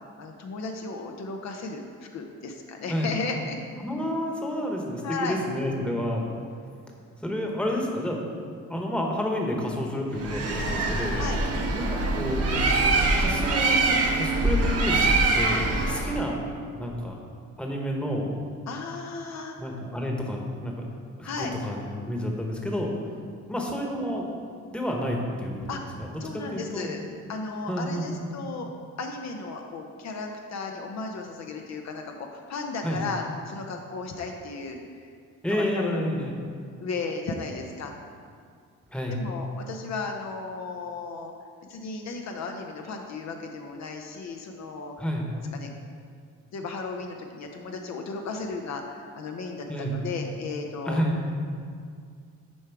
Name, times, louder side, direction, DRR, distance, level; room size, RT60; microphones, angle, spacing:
voice 1, 0.0-3.6 5.0-5.4 11.1-11.4 18.7-19.6 21.2-21.5 25.7-27.0 27.3-28.7 29.0-35.1 35.4-36.1 36.8-37.9 39.1-41.3 41.7-44.9 45.3-45.7 46.5-51.0, left 4 dB, 60° left, 3 dB, 0.7 m, -35 dB
voice 2, 3.8-6.3 7.2-11.2 11.7-12.6 13.2-13.8 14.1-15.1 15.3-16.4 16.8-17.1 17.6-18.3 19.6-20.7 21.2-22.9 23.5-24.3 24.7-25.5 26.0-26.1 26.5-26.9 27.7-28.1 32.8-33.0 35.4-36.3 38.9-39.1 45.0-45.3 49.7-49.9 50.9-51.2, equal, 5° left, 0 dB, 1.1 m, -29 dB
Bird, 10.2-16.2, right 2 dB, 55° right, 0.9 m, -24 dB
7.1 x 4.7 x 4.6 m, 2.2 s
cardioid pair, 90°, 30 cm